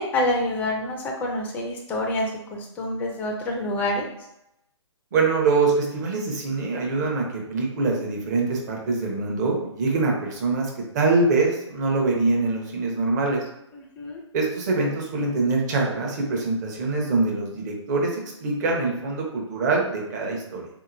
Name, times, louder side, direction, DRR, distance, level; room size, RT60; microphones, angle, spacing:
voice 1, 0.0-4.1 13.7-14.2, left 1 dB, 10° left, 1 dB, 0.4 m, -27 dB
voice 2, 5.1-13.4 14.3-18.2 18.4-20.7, right 3 dB, 35° right, 0 dB, 0.9 m, -24 dB
3.9 x 2.8 x 2.5 m, 0.85 s
figure-of-eight pair, 135°, 16 cm